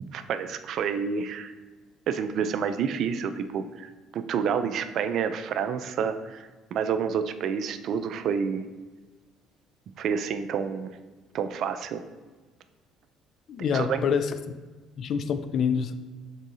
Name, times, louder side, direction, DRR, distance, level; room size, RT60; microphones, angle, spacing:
voice 1, 0.1-1.5 2.1-8.6 10.0-10.9 11.3-12.0 13.7-14.0, right 7 dB, 55° right, 10 dB, 0.3 m, -29 dB
voice 2, 13.5-14.4 15.0-15.9, left 6 dB, 50° left, 10 dB, 0.3 m, -26 dB
3.6 x 3.5 x 4.0 m, 1.3 s
hypercardioid pair, 55°, 0 cm